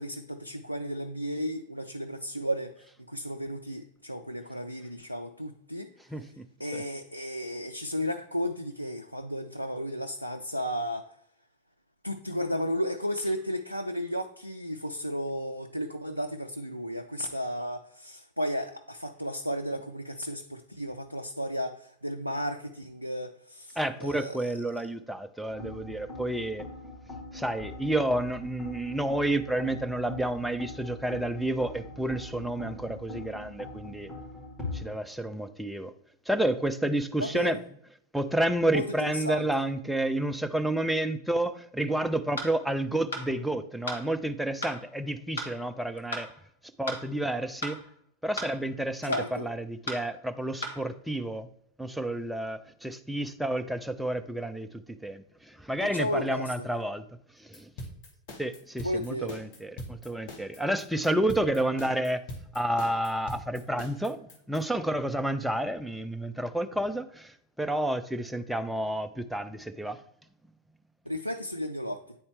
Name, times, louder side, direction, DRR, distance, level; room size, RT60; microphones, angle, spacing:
voice 1, 0.0-2.7 3.1-5.9 6.6-11.1 12.0-24.8 37.2-37.6 38.7-39.5 49.0-49.5 55.8-56.5 58.8-59.4 71.1-72.2, equal, 90° right, 0.3 m, -34 dB
voice 2, 6.1-6.4 6.7-6.8 23.8-26.7 27.3-34.1 34.7-35.9 36.3-37.6 38.1-46.3 46.8-47.8 48.2-51.5 51.8-57.0 57.4-57.7 58.4-62.2 62.5-70.0, right 1 dB, ahead, 0.4 m, -30 dB
sound 1, 25.5-34.8, left 2 dB, 15° left, 2.6 m, -42 dB
sound 2, 42.4-42.5 43.1-43.3 43.9-44.0 44.6-44.8 45.4-45.5 46.1-46.3 46.9-47.0 47.6-47.8 48.4-48.5 49.1-49.3 49.9-50.0 50.6-50.8, left 1 dB, 65° left, 1.2 m, -34 dB
sound 3, 57.5-64.6, left 1 dB, 50° left, 1.3 m, -42 dB
9.2 x 4.2 x 3.3 m
figure-of-eight pair, 90°, 0 cm